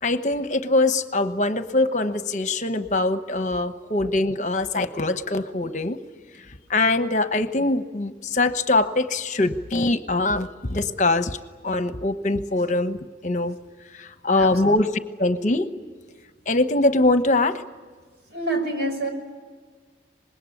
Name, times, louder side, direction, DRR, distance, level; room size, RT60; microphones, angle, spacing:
voice 1, 0.0-6.0 6.7-11.4 11.6-13.6 13.9-14.9 15.2-15.7 16.5-17.6, left 2 dB, 40° left, 10 dB, 1.1 m, -23 dB
voice 2, 14.3-14.8 18.3-19.1, right 2 dB, 65° right, 4 dB, 5.8 m, -27 dB
25.5 x 21.0 x 9.9 m, 1.5 s
head